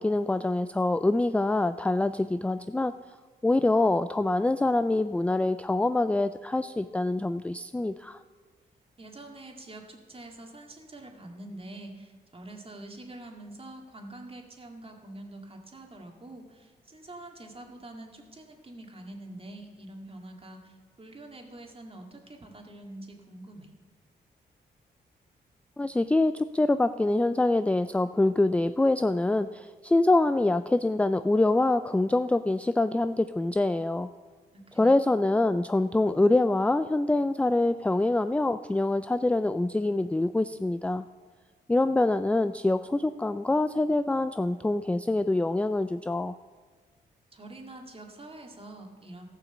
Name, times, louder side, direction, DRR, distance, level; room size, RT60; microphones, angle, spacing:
voice 1, 0.0-2.9 3.4-8.2 25.8-34.1 34.8-41.1 41.7-46.4, left 2 dB, 5° left, 11 dB, 0.3 m, -25 dB
voice 2, 9.0-23.7 34.5-35.0 47.3-49.2, right 1 dB, 30° right, 2 dB, 2.1 m, -45 dB
14.0 x 6.0 x 7.1 m, 1.4 s
cardioid pair, 60°, 19 cm